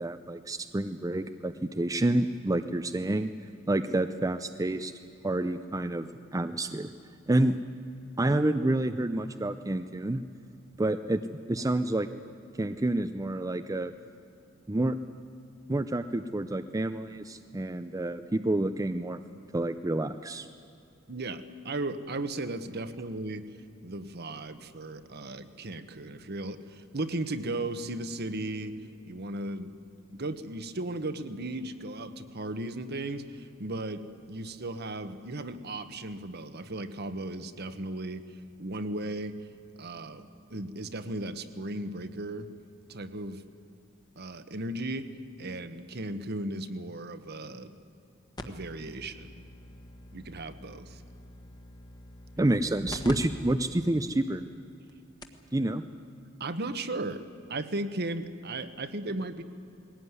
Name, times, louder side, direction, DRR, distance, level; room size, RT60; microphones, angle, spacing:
voice 1, 0.0-3.3 3.7-4.9 5.2-6.9 7.3-7.6 8.2-10.2 10.8-12.1 12.6-13.9 14.7-15.0 15.7-19.2 19.5-20.5 52.4-54.4 55.5-55.8, right 1 dB, 15° right, 9 dB, 0.5 m, -28 dB
voice 2, 21.1-23.4 23.8-28.7 29.1-29.7 30.1-38.2 38.6-39.3 39.8-42.5 42.9-43.4 44.2-45.1 45.4-47.7 48.4-49.4 50.1-51.0 56.4-59.4, right 2 dB, 50° right, 10 dB, 1.2 m, -36 dB
sound 1, 48.4-53.1 53.5-53.6 54.2-54.3 54.9-55.0 55.2-55.5 56.7-56.8, left 1 dB, 20° left, 1.4 m, -44 dB
20.5 x 17.5 x 9.6 m, 2.6 s
head